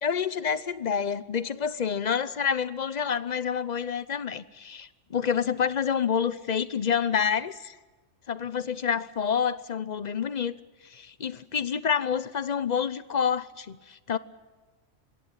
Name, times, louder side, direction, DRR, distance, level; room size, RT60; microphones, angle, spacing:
voice 1, 0.0-7.8 8.3-10.5 10.8-14.2, left 7 dB, 40° left, 16 dB, 0.7 m, -28 dB
22.0 x 17.0 x 8.9 m, 1.3 s
omnidirectional pair, 1.4 m